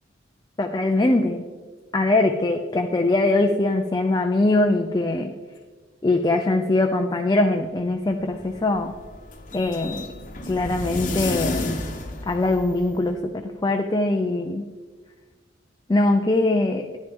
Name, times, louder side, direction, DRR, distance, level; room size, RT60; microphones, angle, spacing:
voice 1, 0.6-1.4 1.9-5.3 6.0-8.9 9.5-10.1 10.5-11.8 12.3-14.6 15.9-16.9, left 2 dB, 20° left, 4 dB, 0.4 m, -22 dB
sound 1, 8.0-13.1, left 2 dB, 45° left, 1.0 m, -32 dB
10.5 x 10.0 x 3.6 m, 1.4 s
head